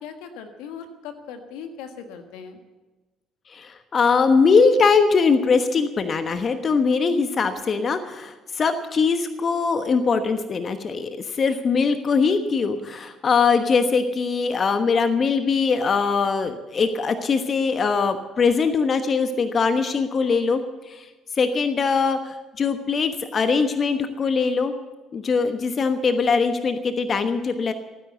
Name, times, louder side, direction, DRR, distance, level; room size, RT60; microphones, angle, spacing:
voice 1, 0.0-2.6, left 6 dB, 75° left, 6 dB, 1.5 m, -39 dB
voice 2, 3.5-20.6 20.9-21.1 21.4-24.7 25.1-27.7, left 5 dB, 45° left, 8 dB, 1.2 m, -21 dB
16.5 x 9.9 x 8.0 m, 1.2 s
hypercardioid pair, 55°, 0 cm